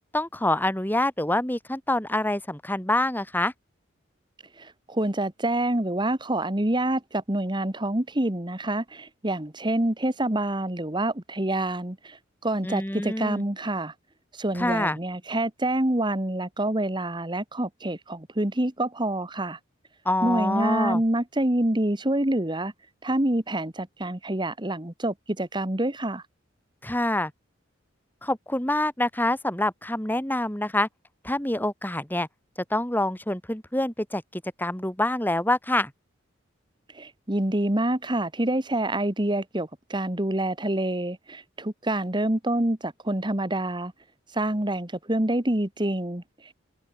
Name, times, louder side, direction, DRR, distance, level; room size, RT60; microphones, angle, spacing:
voice 1, 0.1-3.5 12.6-13.4 14.5-15.0 20.0-21.0 26.8-27.3 28.2-30.9 31.2-32.3 32.7-35.9, left 1 dB, 10° left, 2.4 m, -26 dB
voice 2, 4.6-13.9 14.3-19.6 20.2-22.7 23.0-26.2 36.9-43.9 44.3-46.5, right 1 dB, 25° right, 1.7 m, -27 dB
open air
head